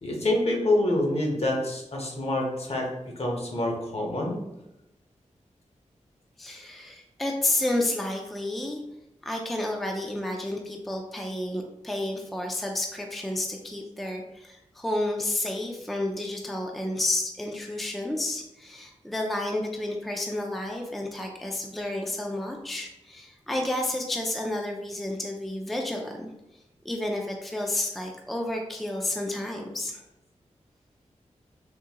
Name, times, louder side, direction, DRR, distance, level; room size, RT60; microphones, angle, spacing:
voice 1, 0.0-2.9 3.2-4.4, left 1 dB, 55° left, 0 dB, 0.9 m, -26 dB
voice 2, 6.4-8.8 9.2-26.3 26.8-30.0, left 1 dB, ahead, 1 dB, 0.4 m, -31 dB
3.7 x 2.6 x 2.8 m, 0.91 s
wide cardioid pair, 90°, 13 cm